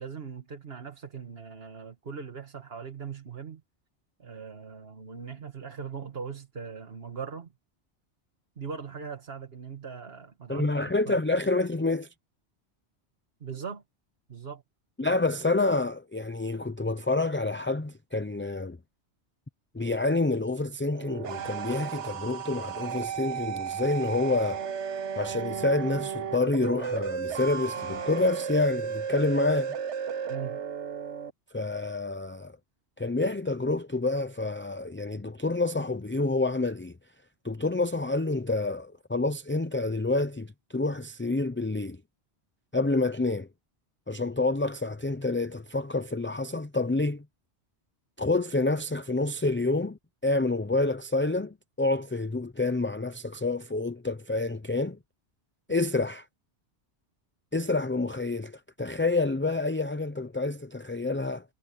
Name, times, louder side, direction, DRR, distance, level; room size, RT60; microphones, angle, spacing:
voice 1, 0.0-3.6 4.2-7.5 8.6-10.7 13.4-13.8 14.3-14.6 30.3-30.6, right 6 dB, 60° right, 1.8 m, -40 dB
voice 2, 10.5-12.1 15.0-18.8 19.7-24.6 25.2-29.7 31.5-32.6 33.0-36.9 37.4-42.0 42.7-43.5 44.1-47.2 48.2-55.0 55.7-56.3 57.5-61.4, left 2 dB, 15° left, 0.4 m, -28 dB
sound 1, 20.9-31.3, right 7 dB, 90° right, 1.3 m, -34 dB
omnidirectional pair, 1.1 m